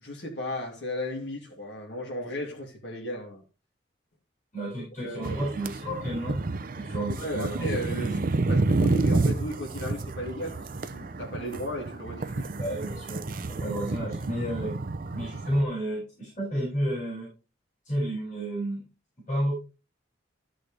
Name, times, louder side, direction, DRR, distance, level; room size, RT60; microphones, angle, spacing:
voice 1, 0.0-3.4 4.6-4.7 5.0-5.3 7.1-10.7 10.9-12.5, left 1 dB, 65° left, 3.0 m, -35 dB
voice 2, 4.5-6.4 6.8-7.6 7.9-8.2 12.5-13.2 13.6-14.7 15.1-17.3 17.9-18.8 19.3-19.5, right 1 dB, 45° left, 6.9 m, -31 dB
sound 1, 5.2-15.6, right 2 dB, 50° right, 0.6 m, -30 dB
13.0 x 6.5 x 3.3 m
head